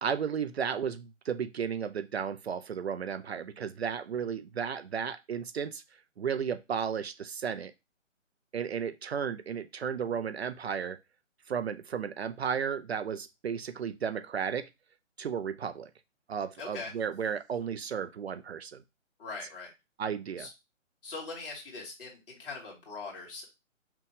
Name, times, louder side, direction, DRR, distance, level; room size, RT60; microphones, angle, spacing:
voice 1, 0.0-5.8 6.2-7.7 8.5-11.0 11.5-14.7 15.2-15.9 16.3-18.8 20.0-20.5, right 7 dB, 55° right, 12 dB, 0.5 m, -34 dB
voice 2, 16.6-16.9 19.2-19.7 20.4-20.5 21.0-23.4, left 3 dB, 45° left, -1 dB, 2.1 m, -41 dB
5.7 x 2.2 x 3.5 m, 0.24 s
hypercardioid pair, 155°, 39 cm